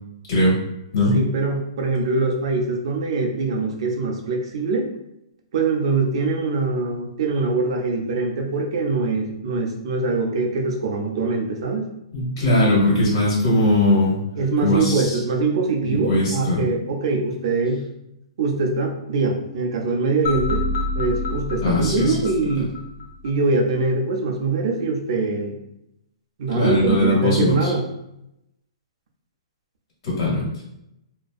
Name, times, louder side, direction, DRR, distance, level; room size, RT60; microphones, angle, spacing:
voice 1, 1.1-4.9 5.5-11.9 14.4-17.8 18.4-20.7 20.9-22.7 23.2-25.6 26.4-27.8, right 3 dB, 60° right, 1 dB, 0.5 m, -23 dB
voice 2, 12.1-14.2 14.6-15.2 15.8-16.6 21.6-22.1 26.5-27.7 30.0-30.4, left 1 dB, 45° left, -6 dB, 1.3 m, -19 dB
sound 1, 20.2-23.3, left 2 dB, 65° left, 0.6 m, -27 dB
2.6 x 2.2 x 2.4 m, 0.83 s
hypercardioid pair, 155°, 3 cm